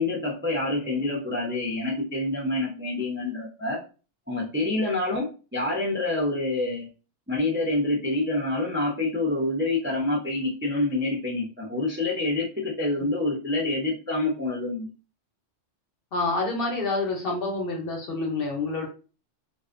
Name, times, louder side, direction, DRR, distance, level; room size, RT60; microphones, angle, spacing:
voice 1, 0.0-3.8 4.3-6.9 7.3-14.9, left 2 dB, 15° right, -3 dB, 0.4 m, -27 dB
voice 2, 16.1-18.9, left 3 dB, 60° left, 1 dB, 0.8 m, -27 dB
2.5 x 2.1 x 2.4 m, 0.34 s
omnidirectional pair, 1.2 m